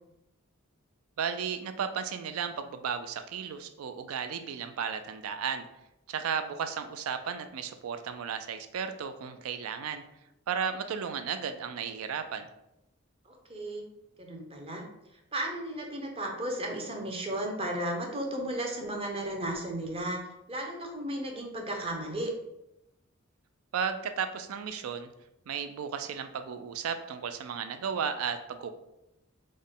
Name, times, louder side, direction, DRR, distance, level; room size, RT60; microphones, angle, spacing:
voice 1, 1.2-5.7 6.1-10.0 10.5-12.5 23.7-25.1 25.5-28.7, right 7 dB, 85° right, 9 dB, 0.4 m, -34 dB
voice 2, 13.3-13.8 14.2-14.8 15.3-20.2 20.5-22.3, right 1 dB, 25° right, 1 dB, 0.6 m, -34 dB
3.7 x 2.1 x 3.7 m, 0.88 s
head